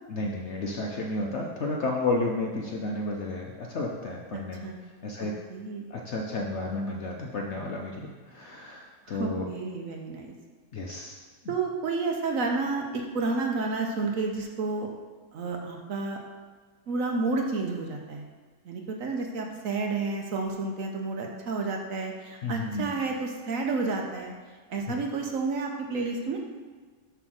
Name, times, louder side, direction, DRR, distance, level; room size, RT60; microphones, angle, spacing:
voice 1, 0.1-4.7 5.0-5.3 5.9-9.5 10.7-11.2 22.4-22.9 24.9-25.0, left 2 dB, 60° left, 0 dB, 0.7 m, -32 dB
voice 2, 4.3-4.8 5.2-5.9 9.1-10.3 11.5-14.9 15.3-16.2 16.9-18.2 18.6-24.3 24.7-26.4, right 3 dB, 60° right, 2 dB, 1.0 m, -30 dB
7.5 x 3.5 x 6.2 m, 1.5 s
omnidirectional pair, 1.8 m